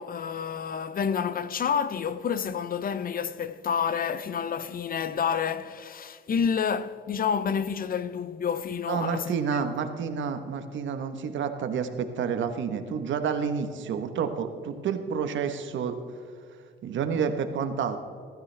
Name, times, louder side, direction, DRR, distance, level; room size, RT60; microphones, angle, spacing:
voice 1, 0.0-9.4, left 7 dB, 45° left, 0.7 m, -29 dB
voice 2, 8.9-16.0 16.8-18.0, right 6 dB, 70° right, 1.2 m, -29 dB
20.0 x 12.5 x 3.4 m
cardioid pair, 90°, 20 cm